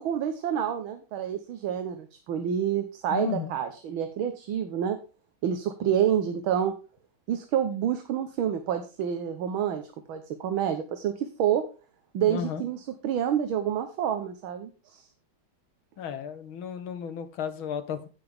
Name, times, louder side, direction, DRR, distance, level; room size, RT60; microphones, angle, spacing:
voice 1, 0.0-5.0 5.4-6.7 7.3-9.8 10.1-11.6 12.1-15.0, right 9 dB, 75° right, 8 dB, 1.8 m, -28 dB
voice 2, 3.1-3.5 12.3-12.6 16.0-18.1, left 7 dB, 75° left, 10 dB, 2.0 m, -33 dB
16.0 x 5.8 x 3.5 m, 0.34 s
omnidirectional pair, 2.3 m